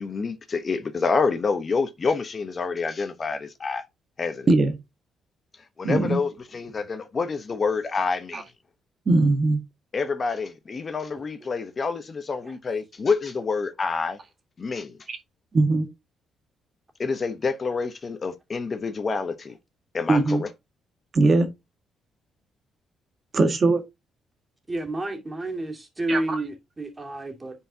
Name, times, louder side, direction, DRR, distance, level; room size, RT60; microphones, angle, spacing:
voice 1, 0.0-3.8 4.2-4.5 5.8-8.4 9.9-14.2 14.6-15.0 17.0-19.5 19.9-20.5, left 4 dB, 40° left, 1.0 m, -27 dB
voice 2, 5.8-6.2 8.3-8.4 9.0-9.6 15.1-15.2 15.5-15.9 20.1-20.4 21.1-21.5 23.3-23.8 26.1-26.4, right 2 dB, 40° right, 1.7 m, -20 dB
voice 3, 24.7-27.5, right 1 dB, 20° right, 2.5 m, -30 dB
9.8 x 4.7 x 2.8 m
cardioid pair, 90°, 0 cm